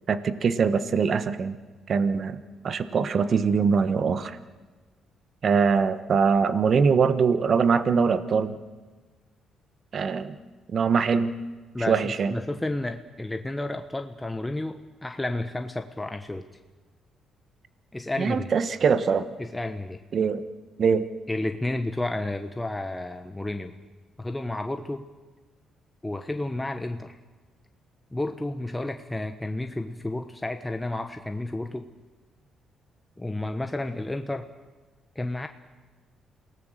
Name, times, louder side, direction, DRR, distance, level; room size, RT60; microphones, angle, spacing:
voice 1, 0.1-1.6 1.9-2.4 2.6-4.4 5.4-8.5 9.9-10.4 10.7-11.3 11.9-12.3 18.2-19.3 20.1-20.4 20.8-21.0, right 5 dB, 50° right, 12 dB, 1.3 m, -22 dB
voice 2, 11.7-16.5 17.9-18.5 19.4-20.0 21.3-23.8 24.2-25.0 26.0-27.2 28.1-31.9 33.2-34.5 35.1-35.5, left 2 dB, 10° left, 6 dB, 1.1 m, -31 dB
28.0 x 18.5 x 6.7 m, 1.3 s
cardioid pair, 90°, 0 cm